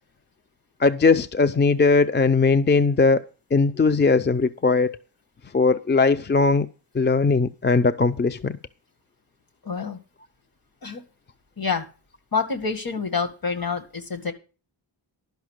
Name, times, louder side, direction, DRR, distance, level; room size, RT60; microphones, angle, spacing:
voice 1, 0.8-3.2 3.5-5.0 5.5-6.7 6.9-8.6, left 4 dB, 25° left, 0.5 m, -19 dB
voice 2, 9.6-10.0 10.8-11.0 11.6-11.9 12.3-14.3, left 5 dB, 50° left, 2.0 m, -27 dB
12.0 x 5.7 x 6.4 m
wide cardioid pair, 95°, 44 cm